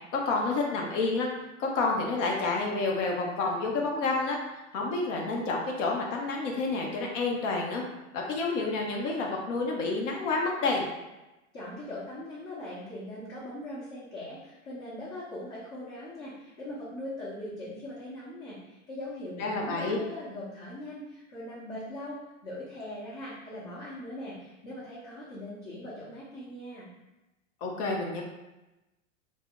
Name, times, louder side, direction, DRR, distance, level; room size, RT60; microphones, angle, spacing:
voice 1, 0.1-1.3 1.6-4.4 4.7-7.8 8.1-10.9 19.4-20.0 27.6-28.2, left 3 dB, 65° left, 0 dB, 0.7 m, -29 dB
voice 2, 11.5-22.2 22.4-26.9, left 1 dB, 35° left, -10 dB, 1.0 m, -40 dB
2.3 x 2.1 x 3.6 m, 1.0 s
hypercardioid pair, 115°, 40 cm